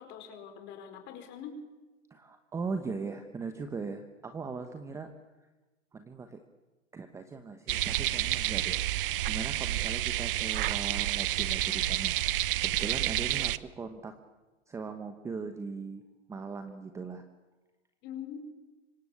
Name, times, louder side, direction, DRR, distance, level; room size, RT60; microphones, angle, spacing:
voice 1, 0.0-1.6 18.0-18.6, left 7 dB, 30° left, 6 dB, 4.7 m, -43 dB
voice 2, 2.1-5.1 5.9-6.4 6.9-8.8 9.3-12.1 12.6-14.2 14.7-16.0 16.3-17.2, right 4 dB, 10° right, 8 dB, 1.0 m, -39 dB
sound 1, 7.7-13.6, right 14 dB, 45° right, 0.9 m, -29 dB
25.5 x 23.5 x 8.5 m, 1.2 s
hypercardioid pair, 150°, 37 cm